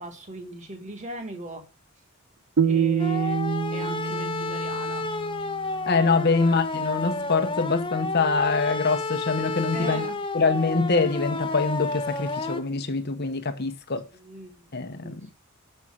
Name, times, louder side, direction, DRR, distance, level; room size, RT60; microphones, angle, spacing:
voice 1, 0.0-1.6 2.6-5.1 6.3-6.5 9.7-10.2 14.1-14.7 15.0-15.4, right 1 dB, 35° right, 1.9 m, -39 dB
sound 1, 2.6-5.7, right 7 dB, 55° right, 0.5 m, -26 dB
sound 2, 3.0-12.6, left 3 dB, 25° left, 0.7 m, -31 dB
voice 2, 5.9-10.0 10.3-14.1 14.7-15.2, left 4 dB, 50° left, 1.0 m, -24 dB
7.1 x 5.5 x 6.2 m
head